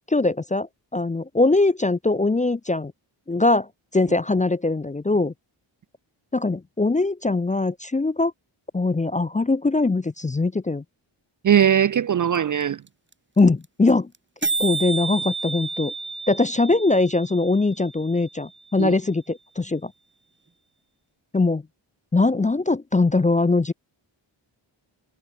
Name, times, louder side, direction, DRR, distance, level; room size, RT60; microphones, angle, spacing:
voice 1, 0.1-2.9 3.3-3.7 3.9-5.3 6.3-8.3 8.7-10.8 13.4-14.1 14.6-15.9 16.3-19.9 21.3-21.6 22.1-23.7, left 3 dB, 15° left, 0.4 m, -21 dB
voice 2, 11.4-12.8 18.8-18.9, right 9 dB, 40° right, 0.4 m, -19 dB
sound 1, 12.3-12.4 12.6-12.7 12.9-13.1 13.4-13.5 13.6-13.9 14.1-14.2 14.4-18.4, right 3 dB, 20° right, 2.3 m, -30 dB
cardioid pair, 75°, 50 cm